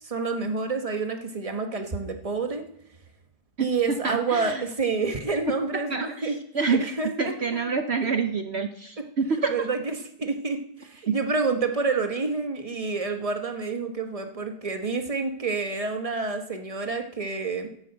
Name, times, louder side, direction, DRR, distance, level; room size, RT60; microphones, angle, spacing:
voice 1, 0.0-2.6 3.6-6.4 6.7-7.3 9.5-17.7, right 4 dB, 25° right, 5 dB, 1.0 m, -28 dB
voice 2, 4.0-4.6 5.9-6.9 7.2-9.5 11.1-11.2, right 5 dB, 65° right, 7 dB, 0.6 m, -27 dB
11.5 x 7.2 x 7.9 m, 0.71 s
omnidirectional pair, 2.0 m